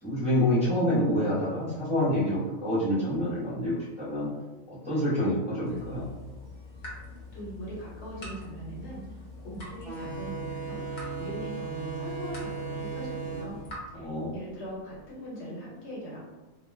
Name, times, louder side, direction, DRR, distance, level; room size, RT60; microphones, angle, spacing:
voice 1, 0.0-4.3 4.7-6.0 13.9-14.3, left 1 dB, 5° right, -10 dB, 0.7 m, -27 dB
sound 1, 5.6-13.8, left 2 dB, 40° left, 0.9 m, -45 dB
voice 2, 7.3-13.6 13.9-14.1 14.3-16.2, equal, 60° left, -6 dB, 1.1 m, -41 dB
sound 2, 9.8-15.0, right 5 dB, 65° right, 0.5 m, -37 dB
2.3 x 2.3 x 3.2 m, 1.1 s
omnidirectional pair, 1.4 m